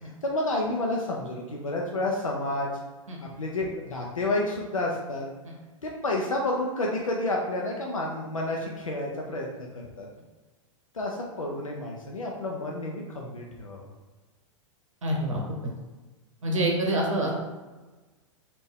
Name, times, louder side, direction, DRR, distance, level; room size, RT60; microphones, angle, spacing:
voice 1, 0.0-2.8 3.2-5.3 5.8-9.7 10.0-10.1 10.9-13.9, left 2 dB, 85° left, -1 dB, 0.5 m, -30 dB
voice 2, 15.0-15.4 16.4-17.3, right 1 dB, 75° right, -1 dB, 0.7 m, -26 dB
3.4 x 2.4 x 3.5 m, 1.2 s
figure-of-eight pair, 100°, 17 cm